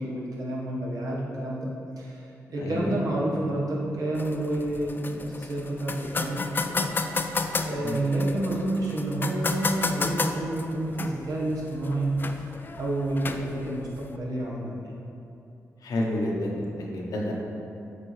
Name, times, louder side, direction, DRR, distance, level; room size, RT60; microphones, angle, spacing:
voice 1, 0.0-1.7 2.0-2.2 2.5-6.9 7.6-12.2 12.8-14.9, right 1 dB, 75° right, -4 dB, 1.3 m, -29 dB
voice 2, 2.6-3.0 7.8-8.0 15.8-17.3, left 1 dB, 80° left, -2 dB, 1.0 m, -29 dB
sound 1, 4.1-14.2, left 3 dB, 35° left, 0.4 m, -33 dB
7.5 x 4.3 x 3.2 m, 2.8 s
cardioid pair, 75°, 6 cm